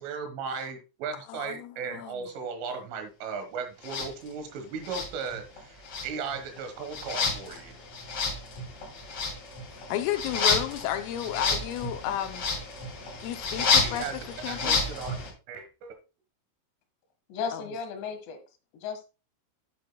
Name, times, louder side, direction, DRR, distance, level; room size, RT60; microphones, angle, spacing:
voice 1, 0.0-7.8 13.8-14.1 14.5-15.2 15.5-16.0, right 5 dB, 75° right, 3.8 m, -36 dB
voice 2, 1.3-2.3 9.7-12.5 13.2-14.8 17.5-17.6, left 12 dB, 85° left, 3.3 m, -33 dB
sound 1, 3.8-4.1 4.8-5.6 5.8-15.3, left 4 dB, 40° left, 3.2 m, -30 dB
voice 3, 17.3-18.4 18.8-19.0, left 6 dB, 70° left, 3.5 m, -34 dB
9.5 x 8.6 x 2.2 m
omnidirectional pair, 5.8 m